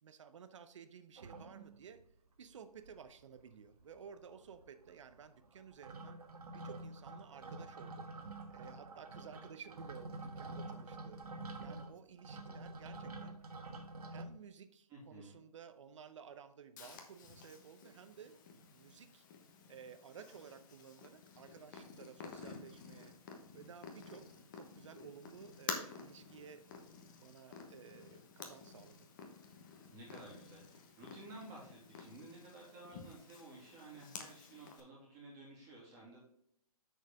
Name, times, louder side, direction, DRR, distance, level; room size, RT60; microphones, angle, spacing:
voice 1, 0.0-2.0 2.4-6.2 6.5-8.1 8.5-11.3 11.6-13.4 14.1-19.3 19.7-23.2 23.5-24.3 24.5-26.6 27.2-29.1, right 7 dB, 50° right, 11 dB, 0.8 m, -55 dB
sound 1, 1.2-2.1 2.5-2.6 2.8-3.4 3.7-14.2, right 2 dB, 80° right, 1.2 m, -48 dB
voice 2, 14.9-15.4 29.9-36.2, right 2 dB, 15° right, -4 dB, 2.1 m, -54 dB
Purr, 16.8-34.8, left 5 dB, 30° left, 1.2 m, -51 dB
6.6 x 6.4 x 3.5 m, 0.72 s
hypercardioid pair, 160°, 20 cm